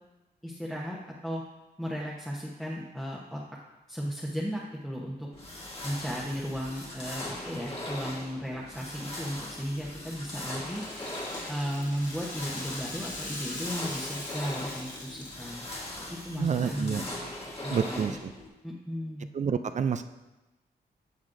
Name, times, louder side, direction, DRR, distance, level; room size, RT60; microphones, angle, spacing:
voice 1, 0.4-1.0 1.2-1.4 1.8-3.4 3.9-5.3 5.8-10.8 11.5-15.6 16.2-17.1 17.6-18.1 18.6-19.3, equal, ahead, -4 dB, 0.9 m, -35 dB
sound 1, 5.3-18.5, left 1 dB, 35° left, 1.7 m, -40 dB
Rattle (instrument), 9.6-15.8, left 2 dB, 50° left, 1.6 m, -42 dB
voice 2, 16.4-17.3 17.7-18.3 19.3-20.0, right 7 dB, 45° right, 10 dB, 0.4 m, -29 dB
9.7 x 6.3 x 2.6 m, 1.1 s
cardioid pair, 90°, 17 cm